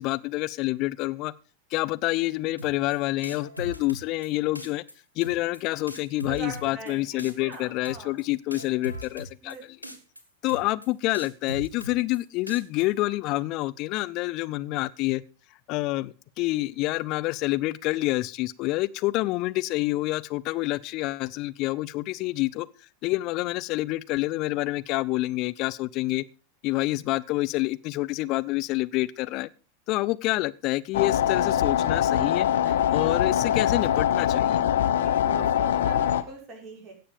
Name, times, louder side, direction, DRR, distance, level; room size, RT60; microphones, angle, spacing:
voice 1, 0.0-1.3 1.7-4.8 5.2-9.5 10.4-15.2 15.7-22.7 23.0-26.2 26.6-29.5 29.9-32.5 32.9-34.6, left 19 dB, 40° left, 0.6 m, -27 dB
sound 1, 2.6-2.9 3.2-4.3 4.6-4.9 5.2-5.6 5.9-6.9 7.2-7.6 7.8-8.2 8.5-9.5 9.8-10.2 10.5-10.9 11.1-12.2 12.5-12.8, equal, 90° right, 1.8 m, -39 dB
voice 2, 6.3-8.2 9.4-9.6 32.6-32.7 34.9-36.9, right 3 dB, 25° right, 5.6 m, -42 dB
sound 2, 30.9-36.2, left 10 dB, 60° left, 1.0 m, -23 dB
17.0 x 6.8 x 5.3 m
figure-of-eight pair, 90°, 0 cm